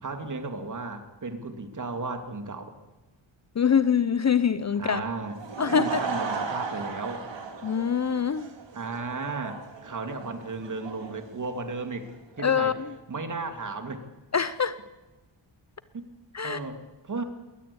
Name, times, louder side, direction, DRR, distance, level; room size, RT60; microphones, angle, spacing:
voice 1, 0.0-2.8 4.7-5.4 5.7-7.3 8.7-12.1 12.4-12.7 13.1-14.0 15.9-16.1 16.4-17.2, right 3 dB, 40° right, 7 dB, 2.7 m, -34 dB
voice 2, 3.6-5.0 5.6-6.0 7.6-8.5 12.4-12.7 14.3-14.8 16.3-16.6, left 7 dB, 35° left, 14 dB, 0.7 m, -24 dB
Laughter / Crowd, 5.2-12.1, right 5 dB, 60° right, 3.7 m, -36 dB
21.5 x 19.5 x 8.7 m, 1.1 s
wide cardioid pair, 135°, 48 cm